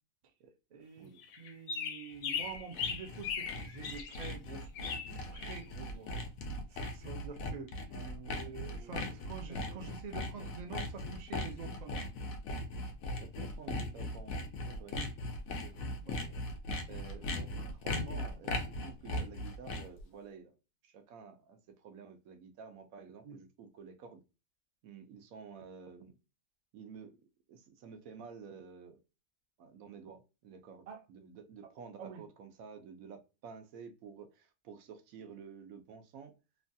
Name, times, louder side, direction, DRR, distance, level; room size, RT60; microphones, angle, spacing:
voice 1, 0.7-1.1 1.4-6.1 6.7-7.8 8.3-12.1 14.9-15.1 16.0-16.2 23.2-23.4 30.9-31.0 32.0-32.2, right 5 dB, 50° right, 0.5 m, -47 dB
sound 1, 1.2-4.3 4.7-5.6, left 6 dB, 65° left, 0.7 m, -39 dB
Sawing, 2.2-20.0, left 1 dB, 85° left, 1.1 m, -39 dB
voice 2, 7.9-9.2 9.5-9.8 13.2-14.4 14.7-15.0 15.6-16.4 16.9-20.5 20.8-24.2 24.8-26.2 26.7-27.2 27.5-29.0 29.6-36.3, right 6 dB, 85° right, 1.1 m, -51 dB
3.1 x 2.2 x 2.6 m
omnidirectional pair, 1.4 m